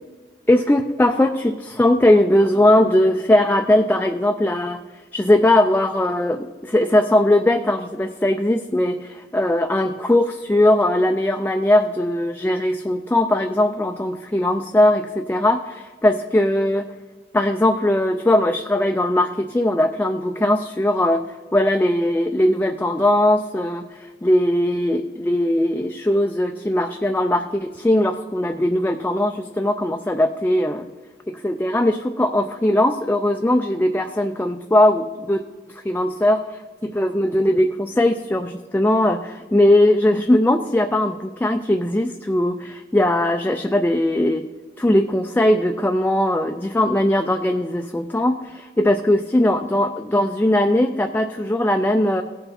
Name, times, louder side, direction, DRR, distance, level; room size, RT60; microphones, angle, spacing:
voice 1, 0.5-16.8 17.3-21.2 21.5-30.9 31.3-35.4 35.7-44.4 44.8-52.2, left 1 dB, 10° left, 5 dB, 0.3 m, -19 dB
17.0 x 5.6 x 4.2 m, 1.4 s
head